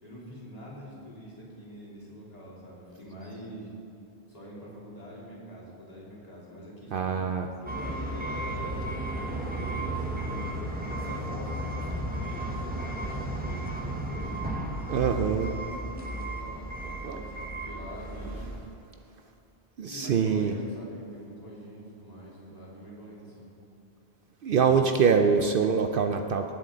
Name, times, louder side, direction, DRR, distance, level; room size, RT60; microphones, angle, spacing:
voice 1, 0.0-3.7 4.3-7.2 7.6-10.3 10.8-14.4 14.9-18.4 19.8-23.5 24.5-25.1, equal, 35° left, -7 dB, 3.3 m, -44 dB
voice 2, 6.9-7.5 14.9-15.5 17.0-17.1 19.8-20.5 24.4-26.5, right 6 dB, 60° right, 5 dB, 0.7 m, -24 dB
sound 1, 7.7-18.6, right 1 dB, 10° right, 1.0 m, -34 dB
19.5 x 7.3 x 3.9 m, 2.8 s
omnidirectional pair, 1.1 m